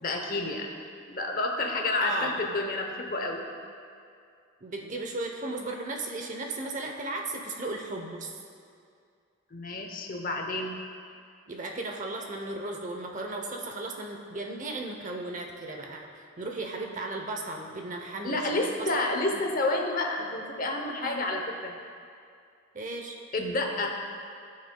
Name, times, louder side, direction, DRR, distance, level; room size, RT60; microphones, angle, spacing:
voice 1, 0.0-0.7 1.1-3.4 9.5-10.7 18.2-21.8 23.3-23.9, left 2 dB, 45° left, 2 dB, 0.8 m, -29 dB
voice 2, 2.0-2.3 4.6-8.4 11.5-18.9 19.3-19.4 21.0-21.2 22.7-23.2, right 2 dB, 35° right, 2 dB, 0.7 m, -36 dB
16.0 x 6.4 x 2.3 m, 2.3 s
head